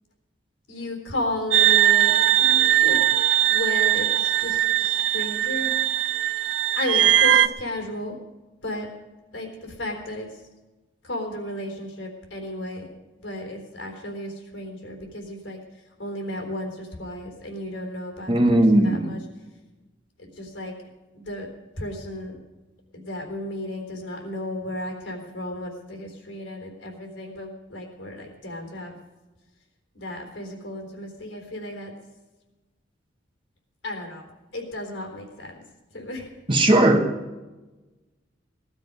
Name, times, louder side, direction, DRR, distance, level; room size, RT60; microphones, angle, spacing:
voice 1, 0.7-3.0 3.5-5.7 6.7-8.2 8.6-8.9 9.3-10.3 11.0-12.9 13.2-15.6 16.0-19.2 20.2-20.7 21.1-21.5 21.8-22.4 22.9-28.9 29.9-31.9 33.8-34.2 34.5-35.5 35.9-36.3, left 1 dB, 75° left, 3 dB, 3.8 m, -33 dB
sound 1, 1.5-7.5, right 12 dB, 70° right, 0.7 m, -20 dB
voice 2, 18.3-19.1 36.5-37.0, right 1 dB, 25° right, 3 dB, 1.2 m, -17 dB
19.0 x 12.5 x 5.4 m, 1.2 s
head